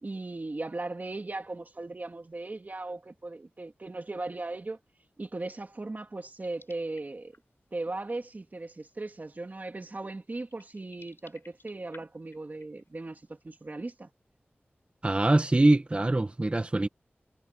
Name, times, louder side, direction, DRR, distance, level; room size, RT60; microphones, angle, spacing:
voice 1, 0.0-4.8 5.2-7.3 7.7-14.1, right 2 dB, 45° right, 2.7 m, -38 dB
sound 1, 6.3-7.6 8.7-8.8 9.4-9.5 10.3-13.2, left 3 dB, 65° left, 6.9 m, -57 dB
voice 2, 15.0-16.9, right 2 dB, 30° right, 1.1 m, -23 dB
wide cardioid pair, 75°, 4 cm